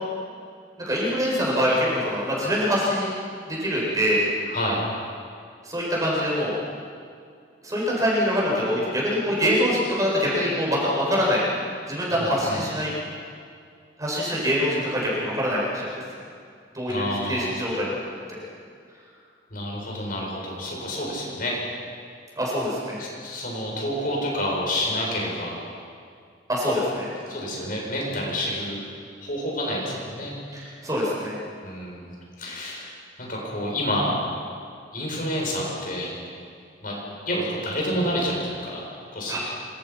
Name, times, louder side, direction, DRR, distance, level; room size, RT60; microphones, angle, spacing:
voice 1, 0.9-3.1 3.5-4.2 5.6-6.6 7.6-11.4 11.9-12.9 14.0-15.9 16.7-18.0 18.3-18.4 22.4-23.0 26.5-27.1 30.5-31.3 39.3-39.4, equal, 20° right, -5 dB, 7.9 m, -24 dB
voice 2, 4.5-4.8 12.1-12.6 16.9-17.5 19.5-21.5 23.0-25.6 27.3-28.8 29.2-30.3 31.6-32.1 32.4-32.9 33.2-34.2 34.9-36.1 36.8-36.9 37.2-39.4, equal, 50° left, -3 dB, 8.0 m, -29 dB
27.0 x 27.0 x 6.1 m, 2.3 s
head